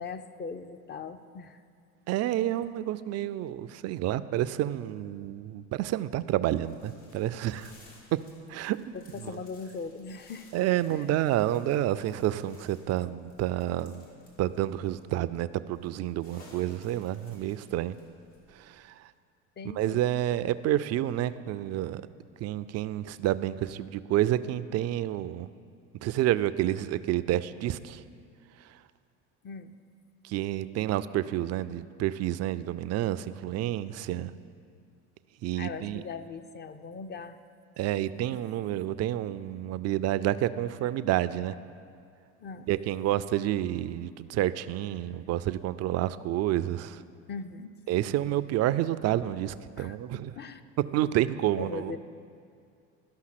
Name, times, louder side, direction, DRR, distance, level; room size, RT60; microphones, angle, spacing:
voice 1, 0.0-1.6 8.9-10.5 10.9-11.1 19.6-20.1 29.4-29.8 35.6-37.4 38.2-38.3 42.4-42.7 47.3-47.7 49.8-50.0 50.4-50.6 51.6-52.0, left 5 dB, 30° left, 10 dB, 0.5 m, -40 dB
voice 2, 2.1-7.7 8.5-9.3 10.5-14.0 14.4-18.0 18.6-18.9 19.8-22.0 22.4-25.5 26.0-28.0 30.2-34.3 35.4-36.0 37.8-41.5 42.7-47.0 47.9-50.3 50.9-52.0, right 13 dB, 45° right, 14 dB, 0.4 m, -29 dB
sound 1, 6.5-18.8, left 2 dB, 85° left, 2.5 m, -58 dB
12.5 x 5.8 x 5.8 m, 2.3 s
hypercardioid pair, 80°, 37 cm